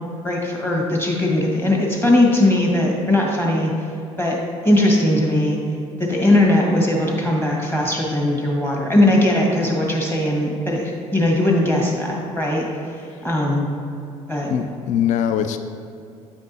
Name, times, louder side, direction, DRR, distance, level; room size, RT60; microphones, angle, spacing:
voice 1, 0.2-3.7 4.2-5.6 6.0-12.7 13.2-13.7 14.3-14.5, left 1 dB, 10° left, -2 dB, 1.5 m, -19 dB
voice 2, 14.5-15.6, left 9 dB, 45° left, 9 dB, 0.4 m, -22 dB
8.2 x 5.2 x 2.7 m, 2.6 s
figure-of-eight pair, 60°, 18 cm